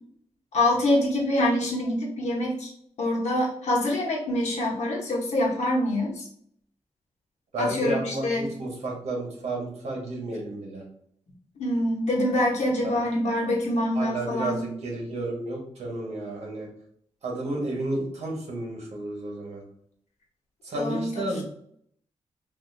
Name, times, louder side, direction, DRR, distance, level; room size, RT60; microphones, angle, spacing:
voice 1, 0.5-2.7 3.0-6.2 7.6-8.5 11.6-14.6 20.7-21.3, left 1 dB, 90° left, -2 dB, 1.0 m, -25 dB
voice 2, 7.5-10.8 12.8-13.0 13.9-16.7 17.2-19.6 20.6-21.4, right 1 dB, 70° right, -1 dB, 1.2 m, -32 dB
3.5 x 2.6 x 2.6 m, 0.67 s
wide cardioid pair, 160°, 11 cm